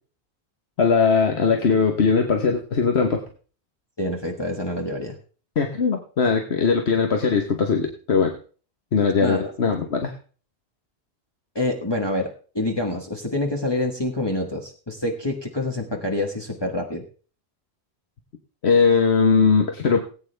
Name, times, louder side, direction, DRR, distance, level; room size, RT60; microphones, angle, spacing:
voice 1, 0.8-3.2 5.6-8.4 8.9-10.1 18.6-20.1, left 5 dB, 75° left, 4 dB, 1.4 m, -20 dB
voice 2, 4.0-5.2 9.2-9.5 11.5-17.0, left 1 dB, 25° left, 1 dB, 1.6 m, -27 dB
18.5 x 8.9 x 3.3 m, 0.40 s
omnidirectional pair, 1.1 m